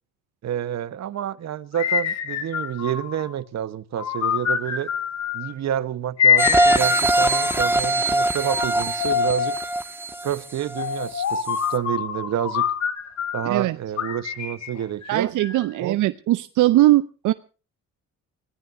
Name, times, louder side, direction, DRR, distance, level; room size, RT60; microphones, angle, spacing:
voice 1, 0.4-4.9 5.3-9.6 10.2-12.6 13.3-15.3 15.8-16.0, right 10 dB, 60° right, 1.2 m, -29 dB
sound 1, 1.7-3.3 3.9-5.5 6.2-7.8 8.5-9.7 10.8-13.5 14.0-15.8, left 7 dB, 65° left, 3.0 m, -26 dB
sound 2, 6.4-11.1 11.6-11.7, right 1 dB, 5° right, 1.8 m, -22 dB
voice 2, 13.4-13.8 15.1-17.3, right 16 dB, 85° right, 0.7 m, -20 dB
25.5 x 17.0 x 2.7 m
cardioid pair, 90°, 30 cm